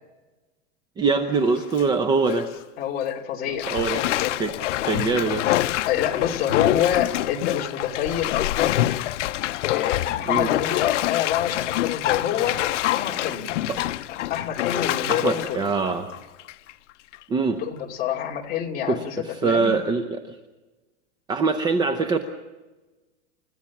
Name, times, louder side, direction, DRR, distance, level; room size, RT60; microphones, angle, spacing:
voice 1, 1.0-2.5 3.5-4.0 4.4-4.5 4.8-5.5 10.3-10.5 13.7-13.8 15.1-16.1 17.3-17.6 18.9-20.4 21.3-22.2, right 4 dB, 10° right, 7 dB, 0.7 m, -23 dB
Bathtub (filling or washing), 1.4-1.8 2.3-2.4 3.6-16.7 17.1-17.2, left 15 dB, 75° left, 0.8 m, -26 dB
voice 2, 2.8-3.7 4.0-4.3 5.4-5.5 5.9-8.9 9.7-13.5 14.3-15.6 17.7-19.8, left 10 dB, 25° left, 0 dB, 2.7 m, -27 dB
29.5 x 14.5 x 7.2 m, 1.2 s
supercardioid pair, 165°, 36 cm